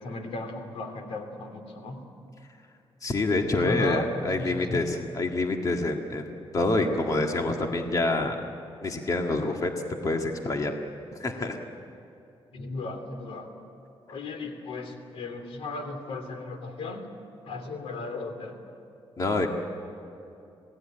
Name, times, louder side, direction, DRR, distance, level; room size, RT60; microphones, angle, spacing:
voice 1, 0.0-2.0 3.6-4.8 6.8-6.9 12.5-13.5 14.1-17.0 17.4-18.6, left 3 dB, 90° left, 6 dB, 3.0 m, -36 dB
voice 2, 3.0-8.4 8.8-9.7 10.0-10.7 11.2-11.6 19.2-19.5, left 2 dB, 35° left, 3 dB, 1.8 m, -27 dB
27.0 x 18.0 x 9.0 m, 2.8 s
wide cardioid pair, 135°, 10 cm